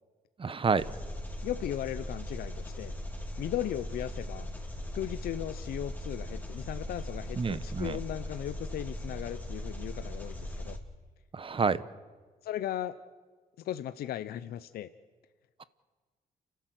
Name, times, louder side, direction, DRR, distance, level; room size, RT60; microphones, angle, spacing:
voice 1, 0.4-0.8 7.4-8.0 11.3-11.8, right 5 dB, 35° right, 16 dB, 0.9 m, -28 dB
Engine, 0.8-10.8, left 1 dB, 10° left, 2.9 m, -39 dB
voice 2, 1.4-2.9 3.4-4.5 4.9-10.8 12.4-13.0 13.6-14.9, left 12 dB, 85° left, 13 dB, 0.7 m, -37 dB
30.0 x 13.0 x 8.0 m, 1.5 s
cardioid pair, 90°, 16 cm